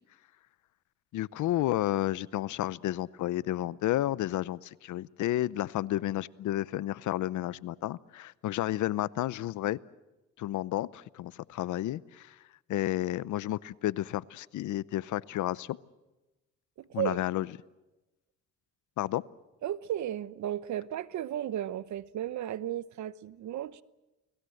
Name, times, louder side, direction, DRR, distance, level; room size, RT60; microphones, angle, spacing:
voice 1, 1.1-9.8 10.4-12.4 12.7-15.8 16.9-17.5 19.0-19.2, left 14 dB, 75° left, 0.8 m, -31 dB
voice 2, 16.8-17.2 19.6-23.8, right 11 dB, 70° right, 1.0 m, -34 dB
29.5 x 19.5 x 7.9 m
cardioid pair, 90°, 30 cm